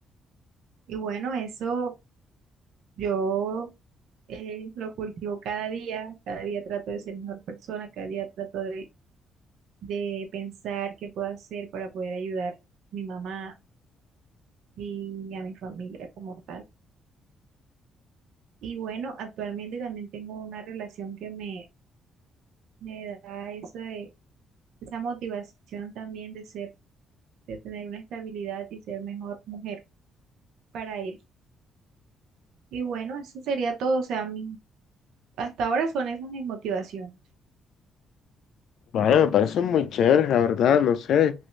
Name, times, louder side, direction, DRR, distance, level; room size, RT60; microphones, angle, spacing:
voice 1, 0.9-1.9 3.0-3.7 4.3-8.8 9.8-12.5 12.9-13.5 14.8-16.6 18.6-21.6 22.8-24.1 24.8-25.4 25.7-26.7 27.5-29.8 30.7-31.2 32.7-34.6 35.4-37.1, right 5 dB, 80° right, 0.7 m, -32 dB
voice 2, 38.9-41.3, left 8 dB, 70° left, 0.5 m, -20 dB
3.1 x 2.6 x 3.1 m
cardioid pair, 90°, 0 cm